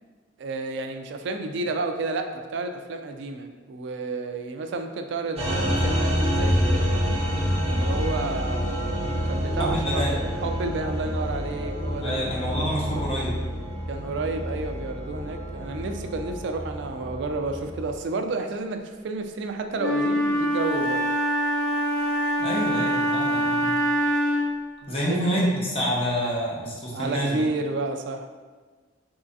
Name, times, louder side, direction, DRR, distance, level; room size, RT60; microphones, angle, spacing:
voice 1, 0.4-7.0 7.6-8.9 9.3-10.0 10.4-12.3 12.6-13.0 13.9-21.1 24.8-25.5 26.9-28.3, right 3 dB, 65° right, 6 dB, 0.3 m, -31 dB
sound 1, 5.4-17.9, equal, 35° right, 0.7 m, -27 dB
voice 2, 9.6-10.1 12.0-13.3 22.4-23.7 24.9-27.4, equal, 30° left, -4 dB, 0.8 m, -27 dB
Wind instrument woodwind instrument, 19.8-24.6, equal, 85° left, 0.5 m, -24 dB
3.6 x 3.1 x 2.6 m, 1.4 s
head